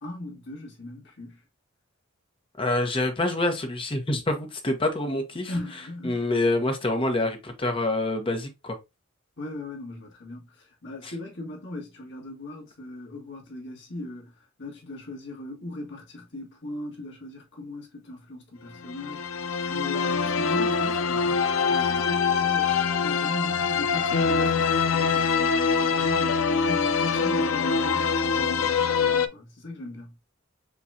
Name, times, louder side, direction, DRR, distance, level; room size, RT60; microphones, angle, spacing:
voice 1, 0.0-1.4 5.5-6.2 9.4-14.3 14.6-19.4 19.7-22.8 23.0-30.1, left 2 dB, 65° left, 1.8 m, -38 dB
voice 2, 2.6-5.5 6.0-8.8 11.0-11.1, left 2 dB, 25° left, 1.0 m, -26 dB
sound 1, 18.8-29.3, left 5 dB, 80° left, 0.5 m, -24 dB
5.6 x 3.1 x 2.6 m
head